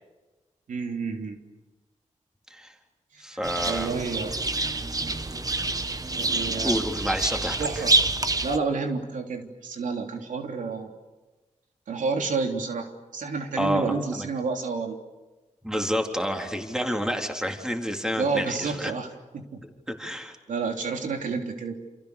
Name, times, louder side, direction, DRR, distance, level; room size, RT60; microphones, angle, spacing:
voice 1, 0.7-1.4 3.1-3.2 3.6-4.3 6.2-6.8 7.6-8.0 8.4-10.9 11.9-15.0 18.2-19.1 19.3-19.6 20.5-21.8, right 4 dB, 90° right, 4 dB, 3.4 m, -30 dB
voice 2, 3.2-3.9 6.6-7.8 13.6-14.3 15.6-18.9 19.9-20.4, equal, 5° right, 3 dB, 3.7 m, -29 dB
sound 1, 3.4-8.6, right 2 dB, 30° right, 1.4 m, -27 dB
29.5 x 28.0 x 6.8 m, 1.2 s
wide cardioid pair, 95°, 13 cm